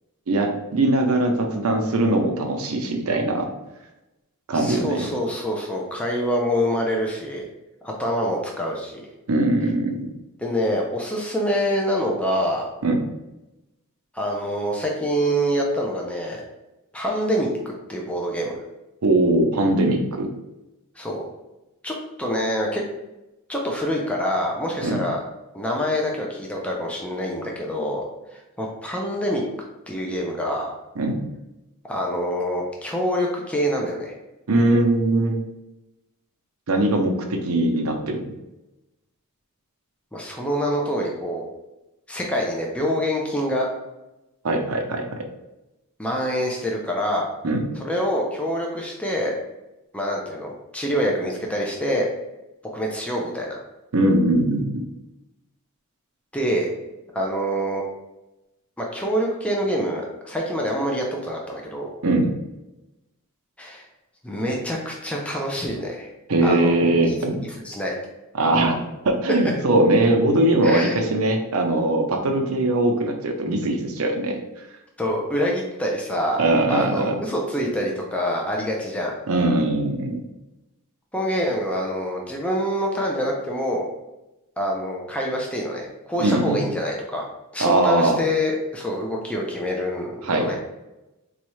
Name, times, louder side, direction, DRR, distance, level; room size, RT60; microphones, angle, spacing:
voice 1, 0.3-3.5 4.5-5.1 9.3-10.1 12.8-13.0 19.0-20.3 24.8-25.0 31.0-31.2 34.5-35.4 36.7-38.3 44.4-45.0 47.4-47.7 53.9-54.9 62.0-62.3 66.3-67.4 68.3-74.4 76.4-77.2 79.3-80.2 86.2-86.6 87.6-88.2 90.2-90.6, right 2 dB, 70° right, 4 dB, 0.6 m, -21 dB
voice 2, 4.5-7.5 7.8-9.0 10.4-12.7 14.1-16.4 16.9-17.5 17.9-18.6 21.0-21.2 21.8-22.8 23.5-25.2 25.5-28.0 28.3-29.4 29.9-30.7 31.9-34.1 40.1-41.4 42.1-43.7 46.0-47.3 47.8-49.3 49.9-52.1 52.7-53.6 56.3-56.7 57.1-57.8 58.8-61.9 63.6-63.9 64.2-66.1 66.4-66.7 67.1-67.4 67.6-67.9 70.6-71.0 75.0-76.4 76.7-79.2 81.1-83.9 84.6-87.3 87.5-90.6, equal, 5° left, -1 dB, 0.4 m, -26 dB
4.1 x 2.3 x 3.0 m, 0.97 s
head